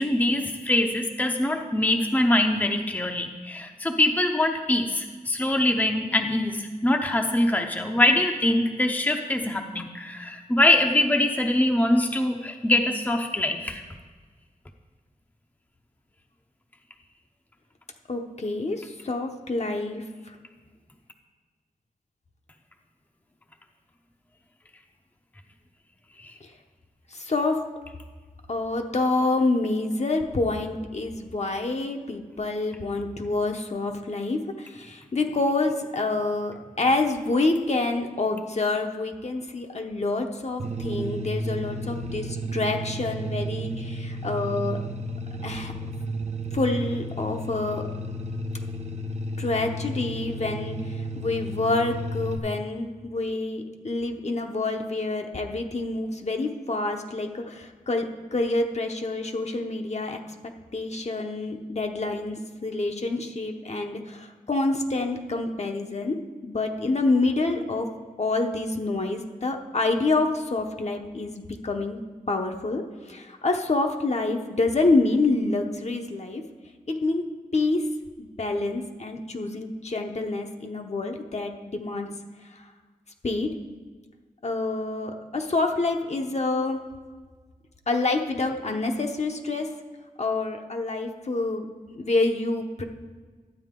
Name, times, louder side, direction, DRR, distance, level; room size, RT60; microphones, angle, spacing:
voice 1, 0.0-13.8 26.2-26.3, left 1 dB, 10° left, 3 dB, 0.6 m, -23 dB
voice 2, 18.1-20.0 27.1-27.6 28.5-44.8 45.4-45.7 46.5-47.8 49.4-50.8 51.2-58.0 58.3-60.2 60.7-66.2 66.4-67.9 68.2-72.0 72.3-72.8 73.1-76.4 76.9-77.2 77.5-77.8 78.2-82.1 83.2-83.5 84.4-86.8 87.9-89.7 90.2-92.8, left 2 dB, 50° left, 3 dB, 0.9 m, -27 dB
sound 1, 40.6-52.4, right 1 dB, 50° right, 0.7 m, -32 dB
12.0 x 8.7 x 3.7 m, 1.5 s
wide cardioid pair, 100°, 15 cm